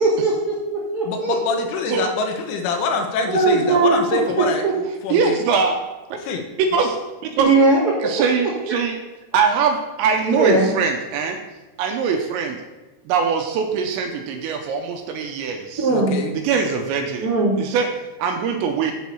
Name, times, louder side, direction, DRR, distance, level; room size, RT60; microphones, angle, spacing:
voice 1, 0.0-1.7 3.3-4.7 7.4-7.9 10.3-10.7 15.8-16.2 17.2-17.6, right 3 dB, 30° right, -10 dB, 2.1 m, -19 dB
voice 2, 1.1-5.4 6.2-6.4 15.9-16.3, left 4 dB, 80° left, 4 dB, 3.4 m, -25 dB
voice 3, 5.1-5.8 6.7-7.0 7.3-7.5 8.0-9.0 9.3-11.4 11.8-12.6 13.1-15.9 16.3-17.3 17.6-17.9 18.2-18.9, right 5 dB, 80° right, 4 dB, 2.8 m, -22 dB
8.0 x 4.6 x 6.9 m, 1.1 s
omnidirectional pair, 5.5 m